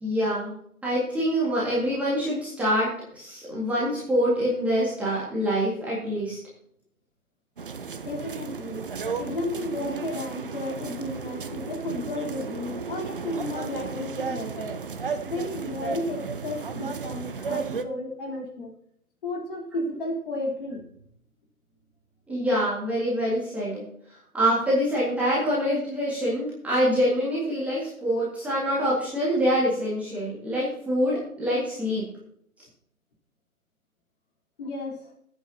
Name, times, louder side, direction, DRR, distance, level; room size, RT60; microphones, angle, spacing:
voice 1, 0.0-0.5 0.8-6.4 17.5-17.6 22.3-23.8 24.3-32.1, equal, 5° right, -9 dB, 2.0 m, -25 dB
sound 1, 7.6-17.8, right 5 dB, 35° right, 0.8 m, -34 dB
voice 2, 8.0-8.9 9.2-14.7 15.3-18.7 19.2-20.8 34.6-35.1, left 2 dB, 35° left, -2 dB, 3.7 m, -33 dB
20.0 x 8.9 x 2.9 m, 0.68 s
figure-of-eight pair, 140°, 44 cm